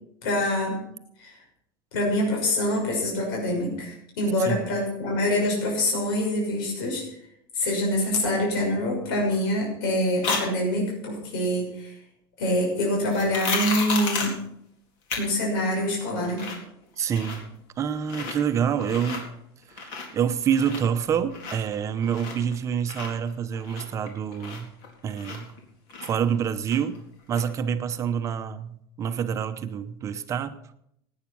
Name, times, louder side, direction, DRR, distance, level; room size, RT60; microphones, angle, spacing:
voice 1, 0.2-0.8 1.2-1.3 1.9-7.0 7.5-11.9 12.4-14.3 15.2-16.5, left 1 dB, 80° left, -1 dB, 6.3 m, -25 dB
sound 1, 10.2-10.4 13.1-14.4 15.1-15.2 15.6-15.7 16.1-16.7 16.9-17.6 18.0-18.4 18.8-19.2 19.6-20.2 20.5-22.5 22.8-25.6 25.9-27.0 27.3-27.4, left 4 dB, 55° left, 4.1 m, -32 dB
voice 2, 17.0-17.4 17.8-19.3 19.8-24.7 25.0-25.5 26.0-27.0 27.3-30.6, right 8 dB, 25° right, 10 dB, 0.9 m, -27 dB
17.5 x 9.7 x 6.2 m, 0.74 s
supercardioid pair, 160°, 12 cm